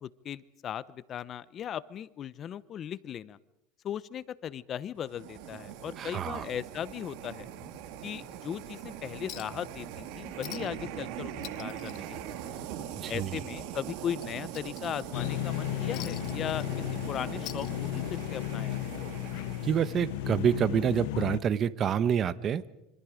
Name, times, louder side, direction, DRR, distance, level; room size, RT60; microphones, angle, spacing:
voice 1, 0.0-3.4 3.8-7.5 8.0-12.6 13.1-18.9, left 9 dB, 35° left, 18 dB, 0.8 m, -38 dB
sound 1, 5.0-20.4, right 10 dB, 65° right, 2.2 m, -41 dB
voice 2, 6.0-6.4 12.9-13.4 19.6-22.6, right 8 dB, 35° right, 16 dB, 1.0 m, -27 dB
Chink clink, 9.3-9.7 10.0-10.1 10.4-10.9 11.2-12.9 13.2-13.4 13.8-15.3 15.9-17.0 17.3-18.3 19.4-19.5, left 16 dB, 50° left, 1.2 m, -46 dB
sound 2, 15.1-21.4, left 18 dB, 70° left, 0.8 m, -34 dB
26.5 x 25.0 x 5.1 m, 0.91 s
supercardioid pair, 130°, 0 cm